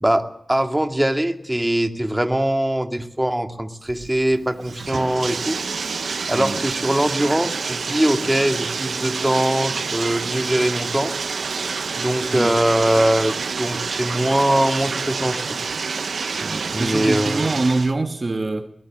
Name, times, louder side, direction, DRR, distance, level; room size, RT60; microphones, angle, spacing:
voice 1, 0.0-5.6 6.3-11.2 12.0-15.7 16.7-17.5, right 1 dB, 15° right, 2.4 m, -22 dB
Bathtub (filling or washing), 3.9-17.9, right 5 dB, 90° right, 0.9 m, -28 dB
voice 2, 12.3-12.6 16.4-18.7, right 2 dB, 50° right, 1.6 m, -24 dB
21.0 x 19.0 x 7.6 m
cardioid pair, 40°, 0 cm